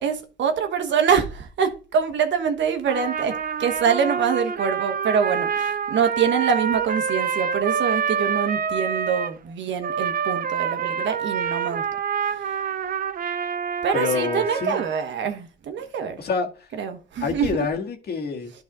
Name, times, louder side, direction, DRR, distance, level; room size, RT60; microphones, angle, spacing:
voice 1, 0.0-11.8 12.2-12.5 13.8-16.2 16.8-17.5, right 7 dB, 65° right, 1.3 m, -25 dB
Trumpet, 2.9-9.3 9.8-15.1, right 7 dB, 45° right, 0.7 m, -27 dB
voice 2, 13.9-14.8 16.2-16.7 17.2-18.5, left 5 dB, 55° left, 1.8 m, -27 dB
11.5 x 4.1 x 4.1 m
cardioid pair, 90°, 20 cm